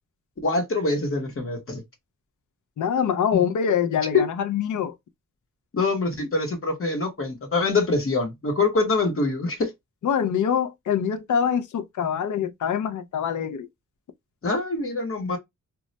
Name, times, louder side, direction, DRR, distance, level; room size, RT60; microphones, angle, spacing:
voice 1, 0.4-1.8 4.1-4.3 5.7-9.7 14.4-15.4, left 3 dB, 45° left, 0.9 m, -24 dB
voice 2, 2.8-5.0 10.0-13.7, left 8 dB, 70° left, 0.5 m, -24 dB
2.2 x 2.1 x 3.8 m
wide cardioid pair, 145°, 31 cm